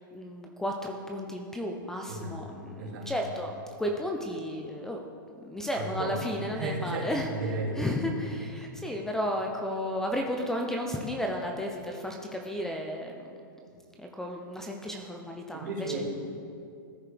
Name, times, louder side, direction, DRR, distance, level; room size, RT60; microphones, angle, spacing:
voice 1, 0.0-3.5 3.8-5.0 5.4-7.3 7.8-13.2 14.0-16.0, equal, 5° left, 2 dB, 0.3 m, -33 dB
voice 2, 2.1-3.1 5.7-7.8 8.9-9.0 13.7-13.8 15.5-16.0, right 2 dB, 60° right, -2 dB, 2.1 m, -35 dB
14.0 x 4.7 x 3.3 m, 2.5 s
hypercardioid pair, 155°, 11 cm